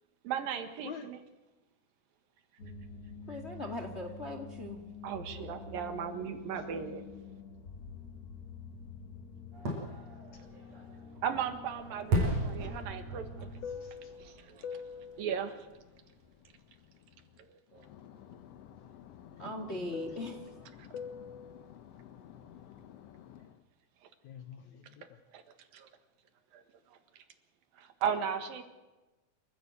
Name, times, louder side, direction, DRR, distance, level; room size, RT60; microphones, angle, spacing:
voice 1, 0.2-1.2 5.0-7.0 11.2-13.5 14.5-14.6 15.2-15.6 17.7-17.8 25.7-25.9 27.8-28.6, right 8 dB, 75° right, 8 dB, 3.3 m, -36 dB
sound 1, 2.6-13.7, left 4 dB, 50° left, 1.1 m, -48 dB
voice 2, 3.3-4.8 5.3-5.4 19.4-20.7, left 1 dB, 30° left, 6 dB, 1.4 m, -40 dB
Fireworks, 9.5-15.3 15.7-15.8, right 1 dB, 45° right, 7.0 m, -36 dB
Fixed-wing aircraft airplane, 12.0-17.4 17.7-23.6, left 7 dB, 85° left, 1.3 m, -47 dB
voice 3, 13.7-14.3 19.4-20.2 24.2-25.2, left 8 dB, 70° left, 9 dB, 1.9 m, -49 dB
27.5 x 15.0 x 8.3 m, 1.1 s
omnidirectional pair, 4.2 m